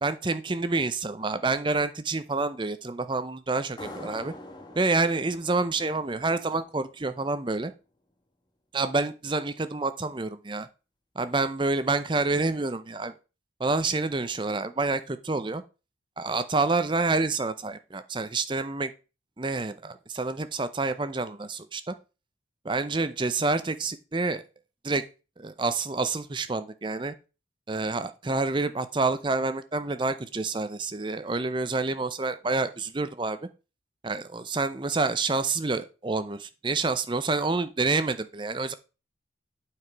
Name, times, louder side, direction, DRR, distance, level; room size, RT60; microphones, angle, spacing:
voice 1, 0.0-4.3 4.8-7.7 8.7-10.7 11.2-13.1 13.6-15.6 16.2-18.9 19.4-21.9 22.6-24.4 24.8-25.0 25.4-27.1 27.7-33.4 34.0-38.8, right 3 dB, 25° right, 12 dB, 0.6 m, -28 dB
sound 1, 3.8-7.1, left 1 dB, 25° left, 1.3 m, -45 dB
8.6 x 4.9 x 4.6 m, 0.32 s
head